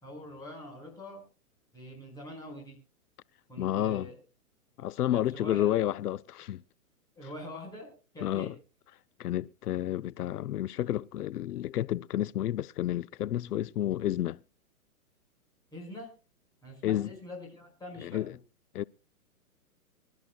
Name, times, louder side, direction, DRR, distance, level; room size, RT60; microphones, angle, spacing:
voice 1, 0.0-1.2 1.7-2.8 3.5-4.1 5.1-5.8 7.2-8.5 15.7-16.1 16.6-18.2, left 1 dB, 10° left, 5.5 m, -44 dB
voice 2, 3.6-4.1 4.8-6.6 8.2-8.6 9.2-14.4 16.8-17.2 18.0-18.4 18.7-18.8, left 12 dB, 90° left, 0.6 m, -30 dB
25.0 x 12.5 x 2.3 m
hypercardioid pair, 160°, 45 cm